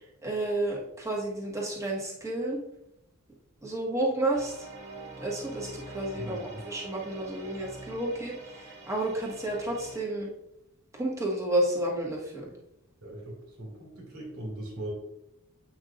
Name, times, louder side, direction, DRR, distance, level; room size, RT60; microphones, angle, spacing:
voice 1, 0.2-2.6 3.6-4.5 5.2-10.3 10.9-12.5, right 1 dB, 15° right, -3 dB, 1.5 m, -31 dB
sound 1, 4.3-10.0, right 2 dB, 50° right, 1.9 m, -45 dB
voice 2, 6.2-6.6 13.0-14.9, right 1 dB, 85° right, -1 dB, 2.5 m, -40 dB
8.1 x 5.8 x 2.6 m, 0.83 s
head